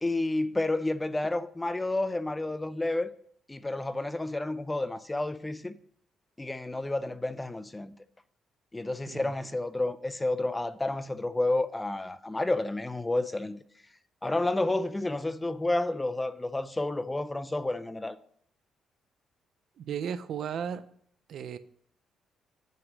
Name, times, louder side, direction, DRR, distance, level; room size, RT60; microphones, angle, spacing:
voice 1, 0.0-3.1 3.5-5.8 6.4-7.9 8.7-13.6 14.2-18.2, left 2 dB, 15° left, 0.4 m, -30 dB
voice 2, 19.8-20.8 21.3-21.6, right 8 dB, 65° right, 0.4 m, -35 dB
9.3 x 3.1 x 6.2 m
cardioid pair, 90°, 0 cm